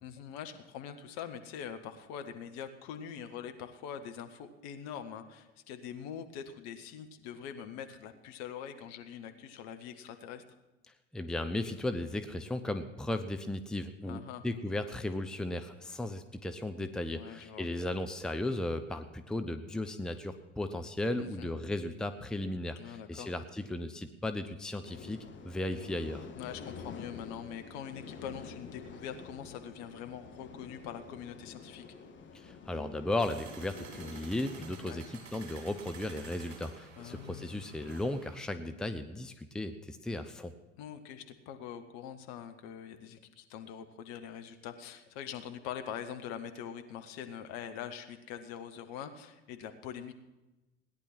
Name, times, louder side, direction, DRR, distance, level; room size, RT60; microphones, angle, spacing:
voice 1, 0.0-10.4 14.1-14.4 17.1-17.7 21.2-21.6 22.8-23.3 26.4-31.8 34.8-35.1 37.0-37.7 40.8-50.1, left 8 dB, 55° left, 8 dB, 1.3 m, -43 dB
voice 2, 11.1-26.2 32.3-40.5, left 1 dB, ahead, 8 dB, 0.7 m, -36 dB
sound 1, 24.8-34.8, left 5 dB, 35° left, 1.6 m, -48 dB
sound 2, 33.2-38.4, right 4 dB, 70° right, 3.0 m, -50 dB
17.5 x 10.5 x 6.0 m, 1.0 s
figure-of-eight pair, 65°, 35 cm